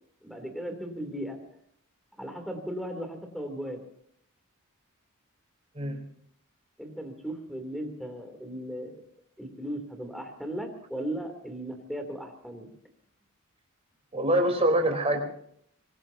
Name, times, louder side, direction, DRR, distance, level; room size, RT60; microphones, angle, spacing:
voice 1, 0.2-1.4 2.2-3.8 6.8-9.0 9.4-12.7, right 1 dB, ahead, 4 dB, 3.2 m, -37 dB
voice 2, 5.7-6.0 14.1-15.2, right 1 dB, 30° right, 4 dB, 4.0 m, -24 dB
24.5 x 20.5 x 2.9 m, 0.66 s
head